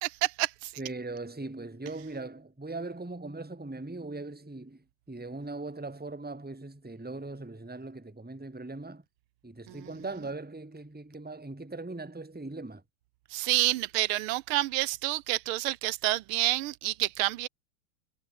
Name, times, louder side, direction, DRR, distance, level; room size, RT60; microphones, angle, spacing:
voice 1, 0.0-0.7 9.7-9.9 13.3-17.5, right 17 dB, 90° right, 1.5 m, -29 dB
voice 2, 0.8-9.0 9.4-12.8, right 2 dB, 5° right, 1.4 m, -40 dB
omnidirectional pair, 2.3 m